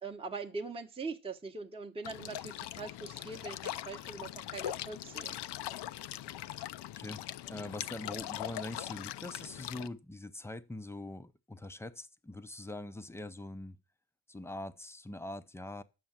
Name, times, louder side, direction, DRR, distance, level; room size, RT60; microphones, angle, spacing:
voice 1, 0.0-5.4, right 4 dB, 10° right, 0.9 m, -42 dB
sound 1, 2.0-9.9, left 13 dB, 60° left, 0.6 m, -41 dB
voice 2, 7.0-13.8 14.3-15.8, left 1 dB, 5° left, 0.6 m, -43 dB
7.8 x 6.2 x 7.2 m
cardioid pair, 95°, 46 cm